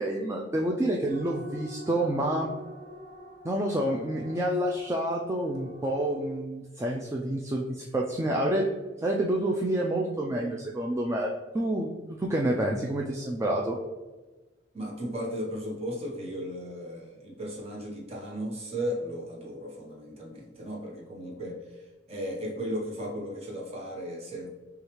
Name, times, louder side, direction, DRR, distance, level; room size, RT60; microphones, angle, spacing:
voice 1, 0.0-2.5 3.4-8.7 9.0-11.9 12.2-13.8, right 1 dB, 15° right, -1 dB, 0.3 m, -28 dB
sound 1, 1.1-6.4, left 1 dB, 25° left, 1.1 m, -46 dB
voice 2, 14.7-21.8 22.1-24.5, equal, 35° right, -2 dB, 1.0 m, -35 dB
6.3 x 2.4 x 3.0 m, 1.2 s
head